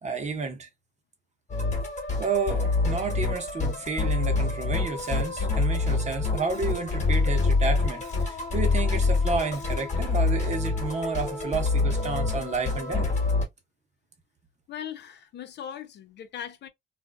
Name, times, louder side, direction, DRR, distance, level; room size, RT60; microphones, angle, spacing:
voice 1, 0.0-0.7 2.2-13.1, right 4 dB, 35° right, 0.9 m, -31 dB
Musical instrument, 1.5-13.4, left 3 dB, 35° left, 1.2 m, -26 dB
voice 2, 14.7-16.7, left 9 dB, 60° left, 0.5 m, -39 dB
2.5 x 2.3 x 2.2 m
cardioid pair, 90°, 20 cm